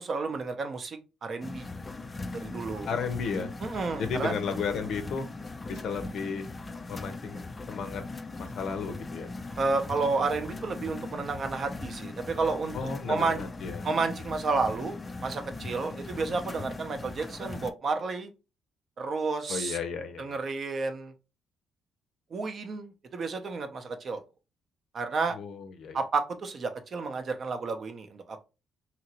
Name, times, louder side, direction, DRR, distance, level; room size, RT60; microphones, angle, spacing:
voice 1, 0.0-1.7 2.3-2.9 3.6-4.3 9.6-12.7 13.1-13.4 13.8-18.3 19.0-19.8 20.2-21.1 22.3-24.2 24.9-25.4 25.9-28.4, right 4 dB, 50° right, 0.5 m, -31 dB
sound 1, 1.4-17.7, left 3 dB, 25° left, 0.3 m, -39 dB
voice 2, 2.9-3.5 4.0-5.3 5.7-6.5 6.9-8.0 8.4-9.3 12.7-13.9 19.5-20.4 25.3-26.0, left 5 dB, 70° left, 0.6 m, -34 dB
2.9 x 2.5 x 2.9 m
cardioid pair, 90°, 0 cm